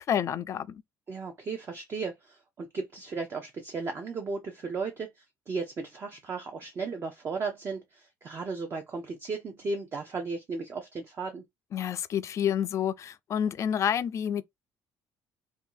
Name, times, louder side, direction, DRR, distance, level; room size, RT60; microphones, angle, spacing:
voice 1, 0.1-0.8 11.7-14.4, left 9 dB, 40° left, 0.4 m, -29 dB
voice 2, 1.1-11.4, right 4 dB, 35° right, 0.6 m, -35 dB
2.7 x 2.4 x 3.7 m
cardioid pair, 125°, 7 cm